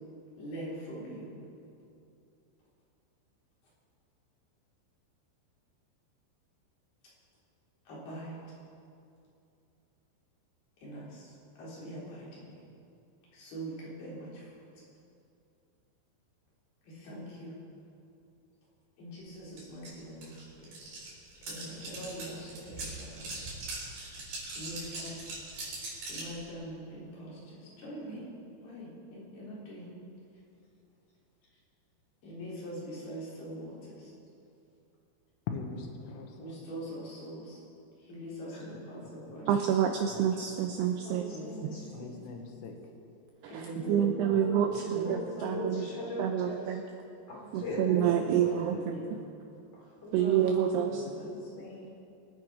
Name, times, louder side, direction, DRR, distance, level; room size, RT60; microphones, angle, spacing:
voice 1, 0.4-1.3 7.9-8.4 10.8-11.3 11.6-12.6 13.3-14.5 16.9-17.6 19.0-20.7 21.5-23.4 24.5-25.3 26.0-28.3 28.6-29.9 32.2-34.1 36.4-37.6 38.1-39.5 41.3-41.8 43.5-44.1 44.8-45.2 45.5-45.6 45.9-46.0 48.5-49.1 50.8-51.3, right 1 dB, 55° left, -7 dB, 5.7 m, -43 dB
sound 1, 19.6-19.7 19.8-26.3, right 2 dB, 60° right, 6.1 m, -41 dB
voice 2, 35.5-36.6 40.1-40.2 40.7-40.8 41.9-42.8 44.0-44.4 44.7-44.8 48.7-48.8, left 5 dB, 85° left, 3 dB, 3.8 m, -41 dB
voice 3, 39.5-41.2 43.4-45.8 46.2-46.8 47.5-49.0 50.1-51.0, right 9 dB, 80° right, 4 dB, 2.4 m, -28 dB
voice 4, 41.0-42.1 43.8-44.8 45.0-46.8 47.3-48.5 49.7-51.9, left 2 dB, 25° left, -4 dB, 4.0 m, -40 dB
25.0 x 9.1 x 4.9 m, 2.6 s
omnidirectional pair, 5.5 m